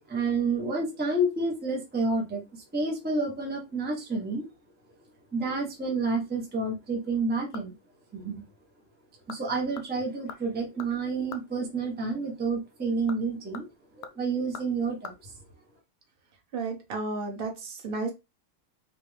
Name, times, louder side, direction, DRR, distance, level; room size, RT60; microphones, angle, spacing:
voice 1, 0.1-4.5 5.3-7.7 8.1-8.4 9.3-13.6 13.9-15.3, right 3 dB, 10° right, 0 dB, 0.6 m, -29 dB
sound 1, 7.0-7.9 8.3-8.4 9.0-9.4 9.7-11.5 12.8-15.2 15.4-15.5, left 8 dB, 90° left, 1.5 m, -45 dB
voice 2, 16.5-18.1, right 3 dB, 75° right, 2 dB, 0.5 m, -32 dB
4.3 x 2.5 x 3.3 m, 0.24 s
omnidirectional pair, 2.3 m